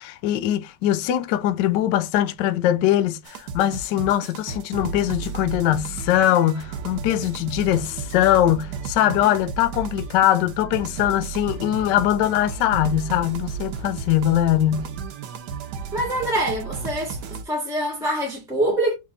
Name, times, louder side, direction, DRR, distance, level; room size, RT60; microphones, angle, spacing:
voice 1, 0.0-14.9, left 12 dB, 75° left, 1.0 m, -21 dB
sound 1, 3.2-17.4, right 6 dB, 70° right, 1.0 m, -34 dB
voice 2, 15.9-17.2 17.4-18.9, right 1 dB, ahead, 1.1 m, -24 dB
3.8 x 3.2 x 3.7 m
omnidirectional pair, 2.3 m